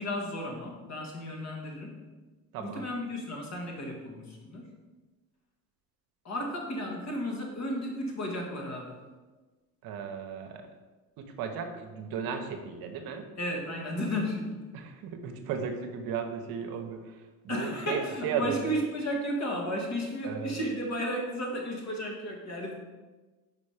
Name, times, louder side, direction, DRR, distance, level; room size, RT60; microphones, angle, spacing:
voice 1, 0.0-2.0 2.6-4.7 6.2-9.0 13.4-14.6 17.5-22.7, equal, 45° left, 0 dB, 1.7 m, -33 dB
voice 2, 2.5-2.9 9.8-10.7 11.2-13.3 14.7-18.6 20.2-20.6, right 7 dB, 70° right, 5 dB, 0.9 m, -35 dB
5.0 x 4.3 x 4.9 m, 1.2 s
supercardioid pair, 85°, 38 cm